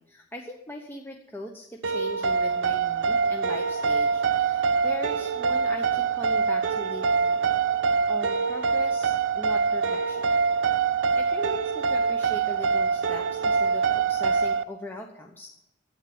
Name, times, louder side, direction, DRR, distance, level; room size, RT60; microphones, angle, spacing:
voice 1, 0.0-7.5 8.1-10.3 11.2-15.5, left 1 dB, 10° left, 1 dB, 0.9 m, -40 dB
sound 1, 1.8-14.6, right 5 dB, 65° right, 0.6 m, -24 dB
11.5 x 9.0 x 7.9 m, 0.89 s
head